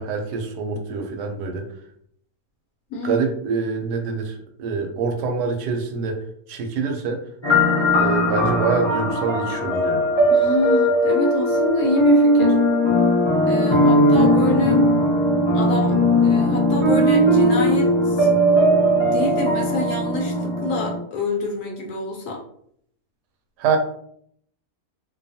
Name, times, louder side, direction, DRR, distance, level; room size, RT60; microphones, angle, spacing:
voice 1, 0.0-1.6 3.0-6.2 6.5-7.2 7.9-10.1 23.6-23.8, right 5 dB, 90° right, 3 dB, 1.1 m, -25 dB
voice 2, 2.9-3.2 10.3-12.6 13.5-14.9 15.5-18.3 18.9-22.4, left 2 dB, 75° left, 0 dB, 1.0 m, -26 dB
sound 1, 7.4-21.0, equal, 40° left, 0.4 m, -18 dB
2.7 x 2.3 x 2.6 m, 0.68 s
omnidirectional pair, 1.7 m